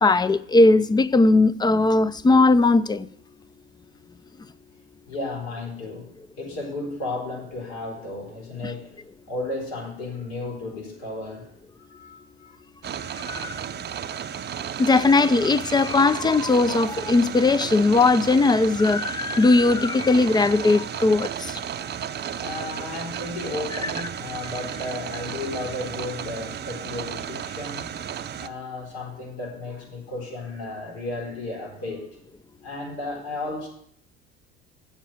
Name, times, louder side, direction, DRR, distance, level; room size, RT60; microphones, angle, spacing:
voice 1, 0.0-3.1 13.3-13.5 14.8-21.6 23.8-23.9, left 3 dB, 15° left, 0.4 m, -19 dB
voice 2, 5.1-6.1 6.4-9.0 9.3-11.5 11.8-12.6 14.5-14.7 22.4-27.9 28.4-32.1 32.6-33.7, left 2 dB, 65° left, 4.3 m, -34 dB
sound 1, 12.8-28.5, right 9 dB, 30° right, 0.6 m, -33 dB
7.3 x 6.9 x 7.7 m
hypercardioid pair, 65°, 33 cm